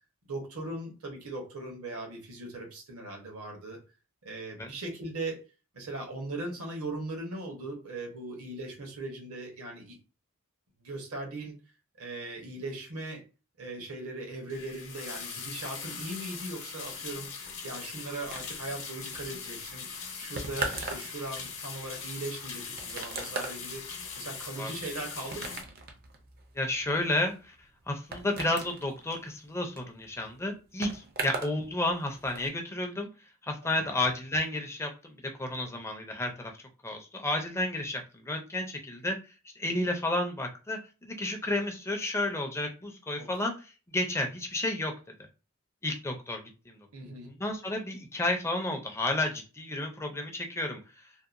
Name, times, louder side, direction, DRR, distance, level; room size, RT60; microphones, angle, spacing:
voice 1, 0.3-3.8 4.2-5.4 5.7-10.0 10.8-11.5 12.0-13.2 13.6-17.3 17.6-19.9 20.2-25.6 31.2-31.3 33.6-33.9 43.2-43.3 46.9-47.3, right 2 dB, 70° right, 1 dB, 0.9 m, -39 dB
sound 1, 14.5-25.6, left 5 dB, 60° left, 0.7 m, -41 dB
sound 2, 18.3-31.6 31.9-32.5, right 3 dB, 45° right, 0.5 m, -40 dB
voice 2, 26.6-27.5 27.9-33.1 33.4-36.5 36.8-39.2 39.6-43.5 43.9-44.9 45.8-46.8 47.3-50.8, left 1 dB, 10° left, 3 dB, 0.4 m, -31 dB
2.8 x 2.1 x 2.4 m, 0.33 s
head